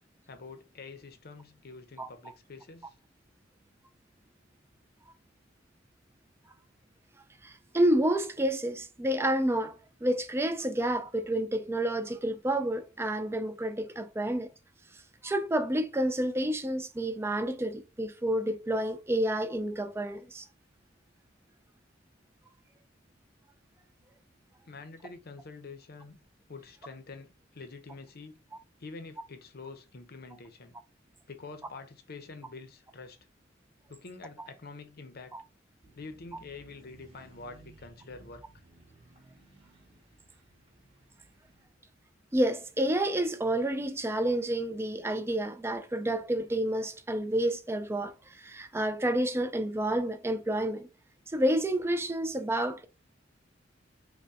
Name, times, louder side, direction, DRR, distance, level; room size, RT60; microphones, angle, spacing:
voice 1, 0.3-2.9 24.7-26.2 26.5-28.4 28.8-30.7 31.3-33.2 33.9-35.4 35.9-38.4, left 3 dB, 55° left, 0.7 m, -46 dB
voice 2, 7.4-14.5 14.9-20.5 35.3-35.4 42.3-50.9 51.3-52.8, right 1 dB, 15° right, 0.4 m, -29 dB
sound 1, 35.8-41.6, right 2 dB, 30° right, 2.3 m, -58 dB
5.4 x 2.2 x 3.5 m
head